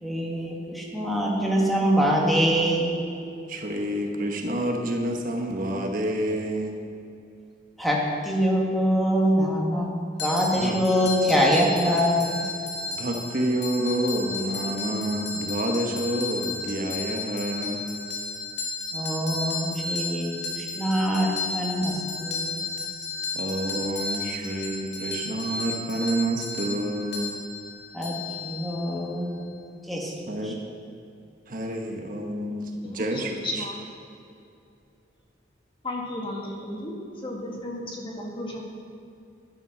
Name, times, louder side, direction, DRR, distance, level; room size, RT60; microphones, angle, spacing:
voice 1, 0.0-2.9 7.8-9.9 10.2-12.4 18.9-22.7 27.9-29.4 29.9-30.2, equal, ahead, -2 dB, 1.9 m, -24 dB
voice 2, 3.5-6.8 10.5-10.8 12.9-17.8 23.3-27.3 30.3-30.6 31.5-33.6, right 1 dB, 45° right, 2 dB, 1.1 m, -28 dB
sound 1, 10.2-29.0, left 3 dB, 65° left, 2.6 m, -33 dB
voice 3, 33.4-33.7 35.8-36.9 37.2-38.6, left 1 dB, 25° left, -2 dB, 1.9 m, -33 dB
11.5 x 11.0 x 6.1 m, 2.5 s
head